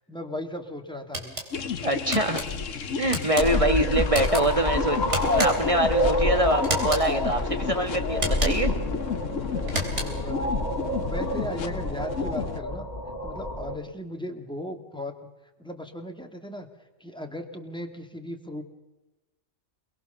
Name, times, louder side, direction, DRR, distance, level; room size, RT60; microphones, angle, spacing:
voice 1, 0.1-1.4 3.5-3.7 9.9-10.6 10.9-12.9 13.2-15.3 15.6-16.7 17.0-18.6, left 1 dB, 5° left, 4 dB, 2.3 m, -37 dB
sound 1, 1.1-1.5 2.1-2.5 3.1-3.5 4.1-4.4 5.1-5.7 6.6-7.1 8.1-8.7 9.6-10.3, right 1 dB, 65° right, 4.1 m, -31 dB
sound 2, 1.5-12.6, left 6 dB, 80° left, 1.5 m, -32 dB
voice 2, 1.8-2.4 3.0-5.0 5.3-8.7, right 1 dB, 25° right, 7 dB, 2.0 m, -24 dB
sound 3, 3.4-13.8, left 1 dB, 35° left, 2.2 m, -28 dB
27.5 x 20.5 x 6.9 m, 1.0 s
omnidirectional pair, 1.3 m